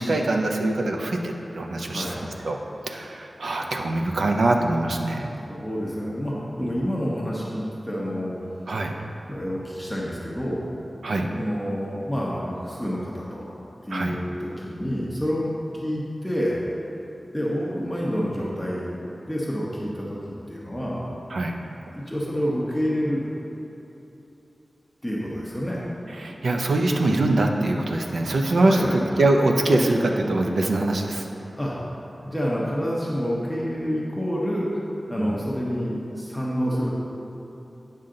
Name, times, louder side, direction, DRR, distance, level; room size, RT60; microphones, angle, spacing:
voice 1, 0.0-2.6 2.9-5.3 6.6-6.7 8.7-8.9 11.0-11.3 13.9-14.2 21.3-21.6 26.1-31.3 35.2-35.4, right 2 dB, 90° right, 2 dB, 0.6 m, -23 dB
voice 2, 1.7-2.3 5.5-8.3 9.3-10.6 11.3-13.5 13.8-15.5 15.7-16.6 17.3-18.9 19.3-20.2 20.5-21.0 21.9-23.2 25.0-25.8 28.6-29.0 31.6-31.8 32.2-34.7 35.1-36.9, equal, 5° left, -6 dB, 1.0 m, -28 dB
8.9 x 5.6 x 3.8 m, 3.0 s
wide cardioid pair, 95°, 0 cm